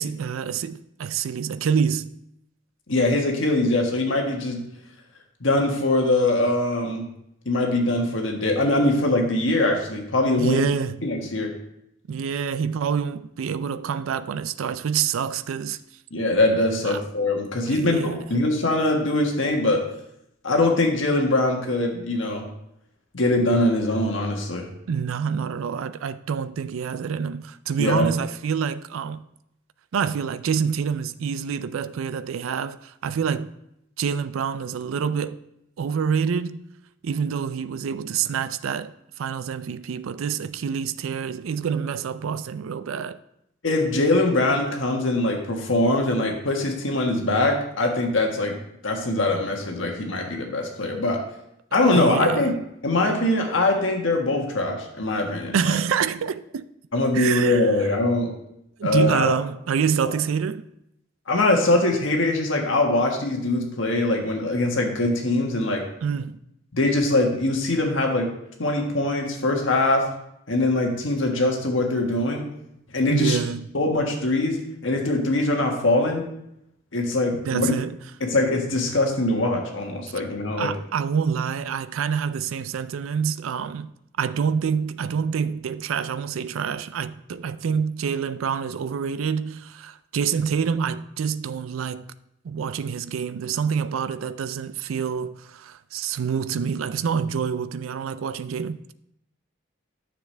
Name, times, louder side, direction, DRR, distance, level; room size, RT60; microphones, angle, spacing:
voice 1, 0.0-2.1 10.4-11.0 12.1-15.8 16.9-17.0 17.7-18.3 24.9-29.2 29.9-33.5 34.0-35.4 35.8-36.6 37.0-43.2 51.9-52.5 55.5-56.7 57.1-57.7 58.8-60.6 66.0-66.4 73.1-73.7 77.3-78.0 80.6-83.9 84.2-92.1 92.4-98.9, right 7 dB, 90° right, 0.4 m, -27 dB
voice 2, 2.9-4.6 5.4-7.0 7.4-10.6 11.0-11.5 16.1-19.8 20.4-22.4 23.1-24.7 27.8-28.1 43.6-48.5 48.8-51.2 51.7-52.5 52.8-55.8 56.9-58.3 58.8-59.3 61.3-65.8 66.7-68.3 68.6-70.1 70.5-72.5 72.9-73.4 73.7-76.2 76.9-77.7 78.2-80.7, left 2 dB, 75° left, 1.5 m, -22 dB
9.6 x 6.9 x 3.3 m
head